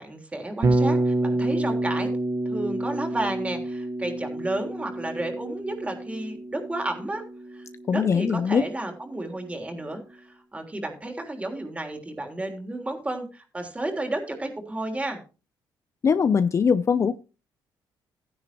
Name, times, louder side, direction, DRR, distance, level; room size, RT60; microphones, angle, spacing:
voice 1, 0.0-2.1 2.4-7.2 7.5-15.2, right 1 dB, 15° right, 4 dB, 3.4 m, -32 dB
Bass guitar, 0.6-8.7, right 2 dB, 40° right, 1.2 m, -28 dB
voice 2, 7.9-8.6 16.0-17.2, left 6 dB, 35° left, 13 dB, 0.6 m, -21 dB
15.0 x 10.5 x 3.0 m, 0.33 s
cardioid pair, 115°, 8 cm